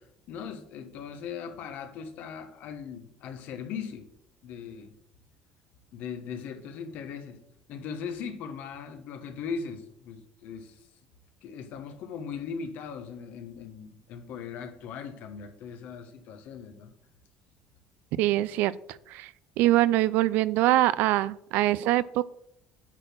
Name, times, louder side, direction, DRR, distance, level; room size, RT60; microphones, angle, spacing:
voice 1, 0.0-4.1 4.4-4.9 5.9-7.4 7.7-10.9 11.4-16.9, left 6 dB, 65° left, 8 dB, 1.2 m, -39 dB
voice 2, 18.2-18.7 19.1-19.3 19.6-22.2, right 15 dB, 75° right, 18 dB, 0.4 m, -23 dB
8.8 x 4.2 x 6.2 m, 0.73 s
cardioid pair, 110°, 3 cm